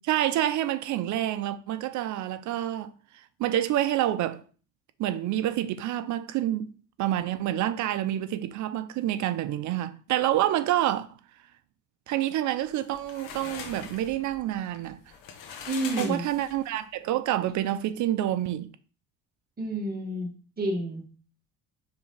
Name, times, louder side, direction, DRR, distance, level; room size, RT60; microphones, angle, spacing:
voice 1, 0.1-4.4 5.0-6.7 7.0-11.1 12.1-15.0 16.0-18.7, right 13 dB, 65° right, 0.7 m, -28 dB
sound 1, 12.6-16.8, left 7 dB, 75° left, 1.1 m, -42 dB
voice 2, 15.7-16.3 19.6-21.1, right 1 dB, 30° right, 1.7 m, -30 dB
4.9 x 3.7 x 5.5 m
cardioid pair, 115°, 32 cm